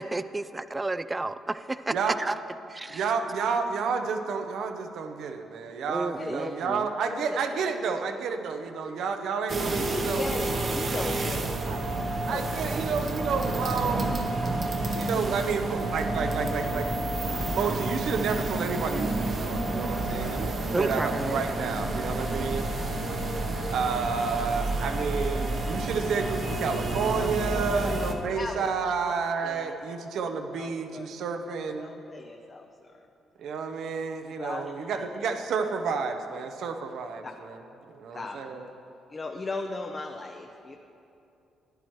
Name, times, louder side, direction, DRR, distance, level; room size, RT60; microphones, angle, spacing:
voice 1, 0.0-2.3 2.7-3.0 5.9-6.9 20.7-21.4, right 2 dB, 20° right, 14 dB, 0.3 m, -31 dB
voice 2, 2.9-10.3 11.7-11.8 12.3-14.2 15.0-16.9 17.2-22.7 23.7-31.9 33.4-37.6 37.9-38.7, right 5 dB, 75° right, 6 dB, 0.7 m, -30 dB
voice 3, 6.2-6.6 7.1-7.7 9.8-11.5 12.0-12.4 27.1-27.9 28.4-28.7 29.0-29.1 29.4-29.7 30.5-31.0 31.8-33.1 34.3-34.7 37.2-37.3 38.1-38.4 39.1-40.8, left 3 dB, 35° left, 3 dB, 0.6 m, -37 dB
sound 1, 9.5-28.1, right 2 dB, 45° right, 0.9 m, -30 dB
14.0 x 10.0 x 3.1 m, 2.8 s
cardioid pair, 90°, 0 cm